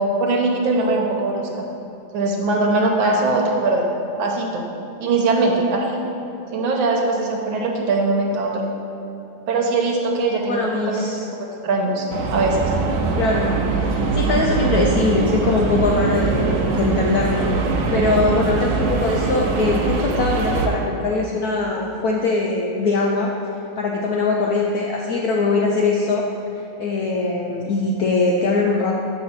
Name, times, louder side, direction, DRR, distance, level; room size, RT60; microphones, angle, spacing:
voice 1, 0.0-1.5 2.1-3.9 4.2-4.7 5.0-6.0 6.5-8.6 9.5-11.0 11.6-12.1 12.3-12.6 18.1-18.4, right 2 dB, 90° right, 0 dB, 1.6 m, -21 dB
voice 2, 10.5-11.2 13.1-13.5 13.9-17.5 17.9-23.3 23.8-26.2 26.8-29.0, left 3 dB, 70° left, -1 dB, 0.9 m, -21 dB
sound 1, 12.1-20.7, right 4 dB, 70° right, 1.3 m, -22 dB
6.8 x 5.8 x 4.3 m, 3.0 s
omnidirectional pair, 2.1 m